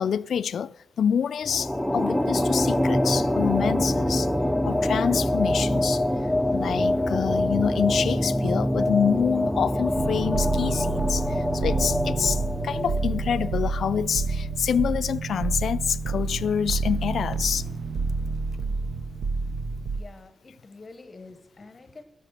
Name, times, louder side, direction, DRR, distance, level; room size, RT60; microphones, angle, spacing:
voice 1, 0.0-4.3 4.6-6.0 6.5-17.7, left 8 dB, 75° left, 0.3 m, -27 dB
sound 1, 1.4-14.0, left 1 dB, ahead, 0.5 m, -25 dB
sound 2, 9.9-20.0, right 4 dB, 65° right, 0.6 m, -29 dB
voice 2, 19.9-22.0, left 3 dB, 25° left, 0.8 m, -46 dB
12.5 x 6.7 x 6.5 m
wide cardioid pair, 175°, 0 cm